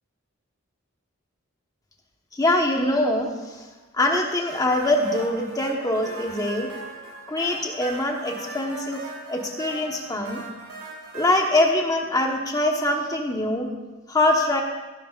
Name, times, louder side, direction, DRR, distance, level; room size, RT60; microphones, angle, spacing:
voice 1, 2.3-3.7 3.9-6.7 7.3-9.0 9.3-10.4 11.1-13.7 14.1-14.6, left 1 dB, 20° left, 1 dB, 1.1 m, -23 dB
sound 1, 4.5-11.4, right 3 dB, 85° right, 2.6 m, -39 dB
15.0 x 10.5 x 2.5 m, 1.2 s
head